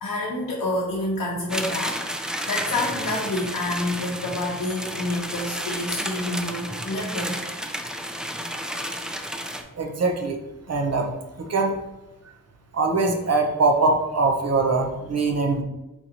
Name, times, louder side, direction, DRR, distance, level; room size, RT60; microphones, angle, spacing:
voice 1, 0.0-7.8, left 1 dB, 70° left, -3 dB, 0.7 m, -28 dB
sound 1, 1.5-9.6, equal, ahead, 0.3 m, -31 dB
voice 2, 9.8-10.4 10.7-11.1 11.4-11.8 12.7-15.6, right 3 dB, 50° right, 4 dB, 0.7 m, -22 dB
4.4 x 3.8 x 2.8 m, 0.97 s
wide cardioid pair, 100°, 34 cm